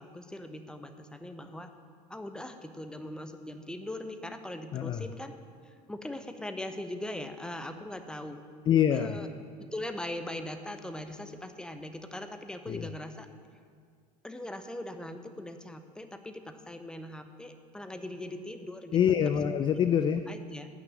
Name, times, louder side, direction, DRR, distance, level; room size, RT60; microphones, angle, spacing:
voice 1, 0.0-1.7 2.1-5.3 5.7-8.4 8.9-9.3 9.6-13.3 14.2-19.0 20.3-20.7, left 1 dB, 5° left, 8 dB, 0.7 m, -40 dB
voice 2, 4.7-5.1 8.7-9.2 12.7-12.9 18.9-20.2, left 9 dB, 20° left, 10 dB, 0.3 m, -25 dB
8.7 x 6.4 x 8.3 m, 2.1 s
figure-of-eight pair, 70°, 21 cm